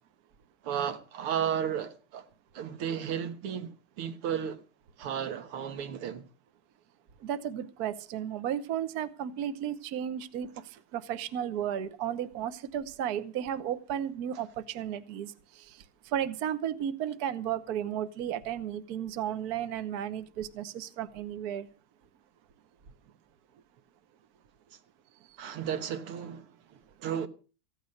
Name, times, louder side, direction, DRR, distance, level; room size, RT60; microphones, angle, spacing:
voice 1, 0.6-2.3 2.5-4.6 5.0-6.3 25.4-27.3, right 8 dB, 85° right, 2.2 m, -34 dB
voice 2, 7.2-15.8 16.1-21.7, right 10 dB, 55° right, 1.2 m, -34 dB
15.5 x 10.0 x 6.4 m
omnidirectional pair, 2.4 m